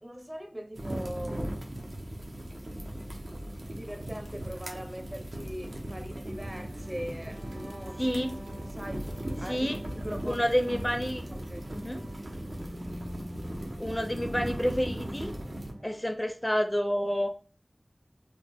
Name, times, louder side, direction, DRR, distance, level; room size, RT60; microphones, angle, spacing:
voice 1, 0.0-1.5 3.1-3.2 3.7-8.1 8.7-9.1 9.4-9.7 9.9-10.5 11.3-11.7, equal, 30° right, 0.7 m, -41 dB
sound 1, 0.7-15.7, right 1 dB, 75° right, 0.8 m, -38 dB
sound 2, 3.4-16.2, equal, 50° right, 1.9 m, -49 dB
voice 2, 8.0-8.3 9.5-9.8 10.2-11.2 11.7-12.0 13.8-15.3 15.8-17.3, equal, 20° left, 0.4 m, -29 dB
3.9 x 2.4 x 3.4 m
wide cardioid pair, 50°, 0 cm